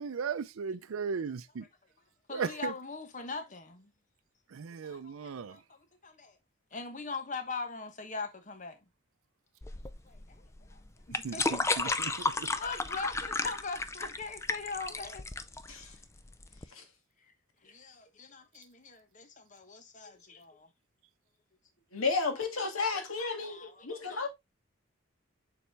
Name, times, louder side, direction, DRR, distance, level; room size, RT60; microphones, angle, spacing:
voice 1, 0.0-1.6 2.3-2.7 4.5-5.6 11.2-12.1 12.4-12.5, right 6 dB, 80° right, 0.5 m, -36 dB
voice 2, 2.3-3.9 4.8-6.3 6.7-8.8 10.1-10.4 10.7-10.8 11.1-15.3 17.6-20.7 22.4-22.7 23.4-24.2, left 4 dB, 35° left, 1.1 m, -41 dB
sound 1, 9.6-16.6, left 3 dB, 15° left, 0.4 m, -33 dB
voice 3, 21.9-24.3, left 4 dB, 90° left, 1.9 m, -32 dB
7.0 x 4.1 x 3.3 m
head